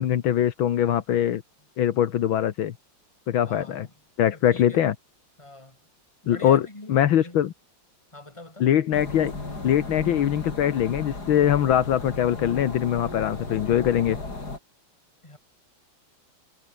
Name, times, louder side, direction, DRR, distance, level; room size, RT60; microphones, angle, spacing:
voice 1, 0.0-1.4 1.8-2.7 3.3-3.9 4.2-5.0 6.3-7.5 8.6-9.3 9.6-14.2, left 10 dB, 75° left, 1.9 m, -22 dB
voice 2, 3.5-3.9 4.3-4.9 5.4-5.8 6.2-7.4 8.1-8.7 15.2-15.4, left 2 dB, 15° left, 3.6 m, -44 dB
sound 1, 8.9-14.6, left 3 dB, 50° left, 5.6 m, -35 dB
omnidirectional pair, 2.2 m